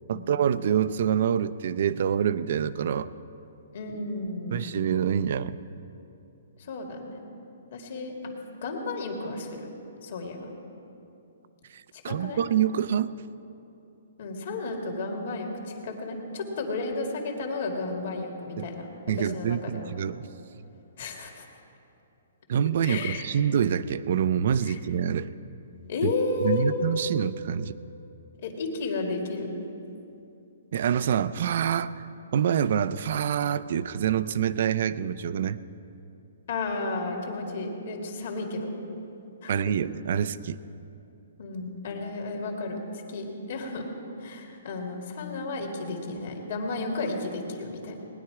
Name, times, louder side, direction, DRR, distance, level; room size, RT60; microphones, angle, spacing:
voice 1, 0.1-3.1 4.5-5.6 11.7-13.1 18.6-18.7 19.1-20.2 22.5-25.3 26.4-27.8 30.7-31.9 32.3-35.6 39.5-40.6, right 8 dB, 50° right, 15 dB, 0.4 m, -26 dB
voice 2, 3.7-4.7 6.6-7.2 7.7-8.1 8.6-9.7 10.0-10.5 11.9-12.4 14.2-18.9 19.2-19.9 21.0-21.5 22.8-23.3 24.6-24.8 25.9-26.7 28.4-29.5 36.5-38.7 39.4-39.7 41.4-43.9 44.2-47.9, left 3 dB, 55° left, 1 dB, 2.1 m, -33 dB
19.0 x 10.5 x 4.8 m, 2.8 s
hypercardioid pair, 165°, 0 cm